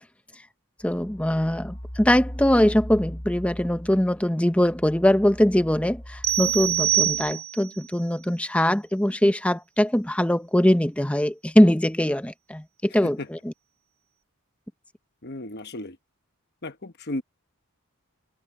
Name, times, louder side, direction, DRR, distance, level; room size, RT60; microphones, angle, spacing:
sound 1, 0.8-7.3, equal, 25° left, 2.8 m, -39 dB
voice 1, 0.8-13.5, left 1 dB, 5° left, 0.7 m, -22 dB
sound 2, 6.2-7.8, right 12 dB, 45° right, 0.5 m, -24 dB
voice 2, 15.2-16.0 16.6-17.2, left 1 dB, 45° left, 1.3 m, -34 dB
head